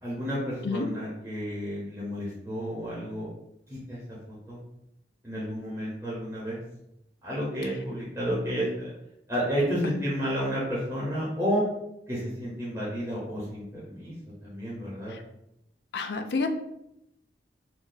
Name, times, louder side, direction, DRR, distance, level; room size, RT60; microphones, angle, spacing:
voice 1, 0.0-3.3 3.7-4.0 4.3-4.6 5.2-6.6 7.2-8.9 9.3-11.6 12.1-14.1 14.4-15.1, equal, 15° right, -8 dB, 0.8 m, -31 dB
voice 2, 15.9-16.5, left 3 dB, 65° left, 6 dB, 0.4 m, -29 dB
2.6 x 2.3 x 3.8 m, 0.80 s
head